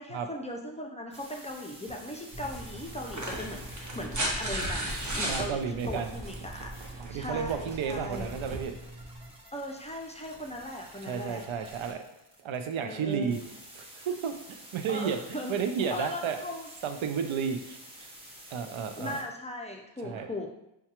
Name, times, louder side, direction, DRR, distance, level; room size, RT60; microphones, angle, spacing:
voice 1, 0.0-8.4 9.5-11.7 12.8-13.4 14.9-15.5 15.9-16.7 19.0-20.6, left 1 dB, 15° left, 1 dB, 0.4 m, -38 dB
sound 1, 1.1-19.2, right 1 dB, 10° right, 0.8 m, -51 dB
sound 2, 1.9-2.0 3.0-5.5 7.0-7.1, right 1 dB, 35° right, 0.9 m, -33 dB
sound 3, 2.3-9.3, right 1 dB, 60° right, 0.9 m, -41 dB
voice 2, 5.3-6.1 7.0-8.7 11.0-12.0 12.4-13.4 13.8-16.4 16.8-18.1 18.5-19.2 20.0-20.3, right 6 dB, 80° right, 6 dB, 0.5 m, -32 dB
5.7 x 2.3 x 2.9 m, 0.84 s
cardioid pair, 65°, 47 cm